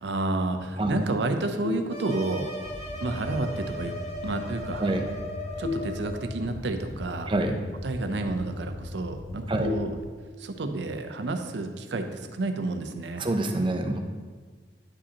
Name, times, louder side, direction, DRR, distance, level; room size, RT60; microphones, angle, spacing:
voice 1, 0.0-2.5 3.0-4.0 4.2-4.9 5.6-7.3 7.8-9.9 10.4-13.2, right 2 dB, 75° right, 7 dB, 0.6 m, -30 dB
sound 1, 1.6-2.6 5.6-6.6 9.6-10.6, left 4 dB, 80° left, 0.8 m, -35 dB
sound 2, 1.9-6.4, equal, 40° left, 1.0 m, -38 dB
sound 3, 2.7-10.0, left 2 dB, 15° left, 0.4 m, -40 dB
voice 2, 7.3-7.6 9.5-9.7 13.2-14.0, right 2 dB, 30° right, 4 dB, 0.6 m, -26 dB
9.6 x 5.0 x 2.8 m, 1.5 s
head